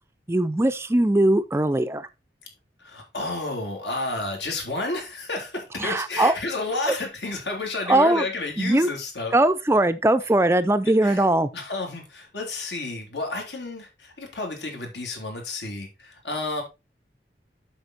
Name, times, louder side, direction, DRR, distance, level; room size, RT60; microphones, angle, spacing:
voice 1, 0.3-2.1 5.8-6.4 6.9-7.0 7.9-8.3 8.6-8.9 9.3-11.5, right 1 dB, 15° right, 0.4 m, -20 dB
voice 2, 2.8-9.3 11.0-11.2 11.5-16.6, left 2 dB, 80° left, 3.3 m, -31 dB
8.0 x 5.7 x 4.2 m
head